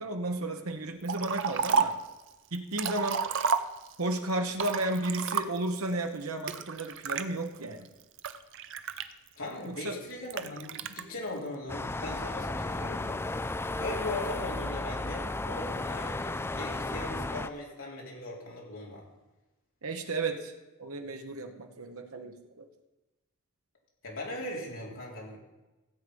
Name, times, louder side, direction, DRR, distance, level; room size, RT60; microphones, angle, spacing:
voice 1, 0.0-2.0 2.5-3.2 4.0-7.9 9.6-10.0 10.9-11.0 19.8-20.5 20.8-22.7, right 2 dB, 80° right, 5 dB, 1.3 m, -33 dB
Liquid, 1.1-2.1 2.5-4.1 4.5-5.8 6.5-7.2 7.8-9.5 10.3-11.0, right 6 dB, 55° right, 0.7 m, -31 dB
voice 2, 9.4-13.2 13.8-19.0 24.0-25.4, left 2 dB, 65° left, -3 dB, 3.8 m, -39 dB
sound 1, 11.7-17.5, left 2 dB, 10° left, 0.3 m, -34 dB
16.0 x 8.0 x 5.4 m, 1.1 s
head